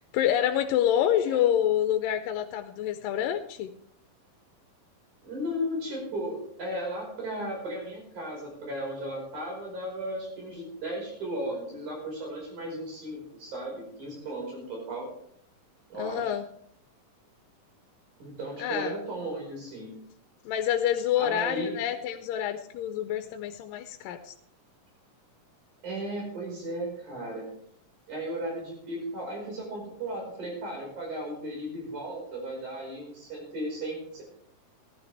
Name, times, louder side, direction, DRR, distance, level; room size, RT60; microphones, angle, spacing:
voice 1, 0.0-3.7 16.0-16.4 18.6-19.0 20.5-24.3, left 10 dB, 90° left, 8 dB, 2.3 m, -27 dB
voice 2, 5.2-15.1 15.9-16.3 18.2-19.9 21.2-21.7 25.8-27.4 28.1-34.2, right 1 dB, 60° right, -1 dB, 6.5 m, -35 dB
15.5 x 12.0 x 3.4 m, 0.68 s
omnidirectional pair, 3.8 m